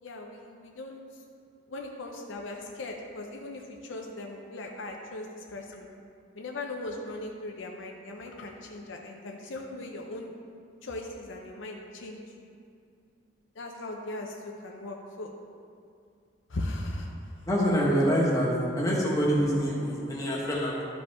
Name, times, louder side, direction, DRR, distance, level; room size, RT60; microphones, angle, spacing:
voice 1, 0.0-1.0 1.7-5.9 6.4-10.3 10.8-12.5 13.6-15.3 16.5-17.1, left 2 dB, 75° left, 1 dB, 0.7 m, -38 dB
voice 2, 17.5-18.5 18.8-20.9, equal, 20° left, -5 dB, 1.5 m, -25 dB
12.0 x 4.9 x 3.6 m, 2.4 s
head